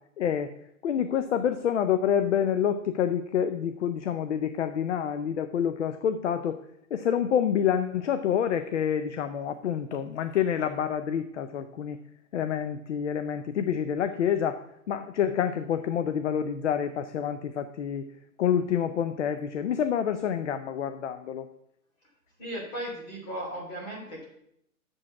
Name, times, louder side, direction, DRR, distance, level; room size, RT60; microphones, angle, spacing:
voice 1, 0.2-0.6 0.8-6.6 6.9-12.0 12.3-18.0 18.4-21.5, left 8 dB, 55° left, 10 dB, 0.5 m, -27 dB
voice 2, 22.4-24.2, right 1 dB, 25° left, -3 dB, 2.8 m, -36 dB
7.1 x 5.3 x 6.9 m, 0.75 s
hypercardioid pair, 170°, 44 cm